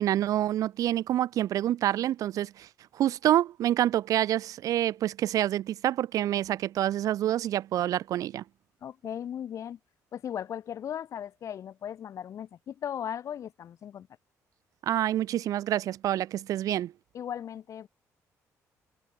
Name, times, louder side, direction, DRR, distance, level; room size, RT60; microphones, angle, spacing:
voice 1, 0.0-2.7 2.9-8.4 14.8-16.9, right 12 dB, 70° right, 0.4 m, -27 dB
voice 2, 8.8-9.8 10.1-14.1 17.1-17.9, left 9 dB, 60° left, 0.9 m, -37 dB
cardioid pair, 95°, 6 cm